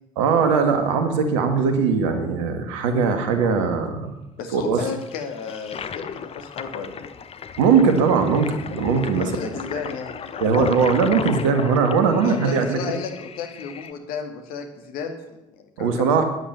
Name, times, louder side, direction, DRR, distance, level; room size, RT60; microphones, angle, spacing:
voice 1, 0.2-4.1 4.5-4.8 7.6-9.3 10.4-12.8 15.8-16.2, right 5 dB, 70° right, 7 dB, 2.0 m, -20 dB
voice 2, 4.4-7.1 9.1-10.7 12.2-16.1, left 5 dB, 60° left, 5 dB, 2.3 m, -33 dB
Toilet flush, 4.8-13.9, left 7 dB, 35° left, 1.0 m, -35 dB
12.5 x 9.9 x 8.5 m, 0.95 s
figure-of-eight pair, 55°, 17 cm